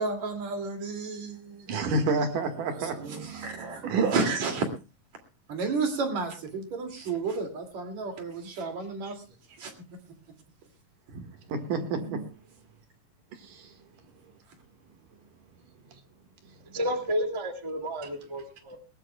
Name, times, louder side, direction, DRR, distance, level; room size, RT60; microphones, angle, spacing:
voice 1, 0.0-1.7 2.7-3.9 4.1-4.7 5.5-9.2 9.6-9.7, right 4 dB, 55° right, 5 dB, 3.7 m, -32 dB
voice 2, 1.7-4.2 11.1-11.2 11.5-12.2 13.4-13.7, right 3 dB, 70° right, 6 dB, 3.2 m, -29 dB
voice 3, 16.7-18.8, equal, 10° right, 5 dB, 1.7 m, -31 dB
20.5 x 19.0 x 2.3 m, 0.31 s
omnidirectional pair, 4.0 m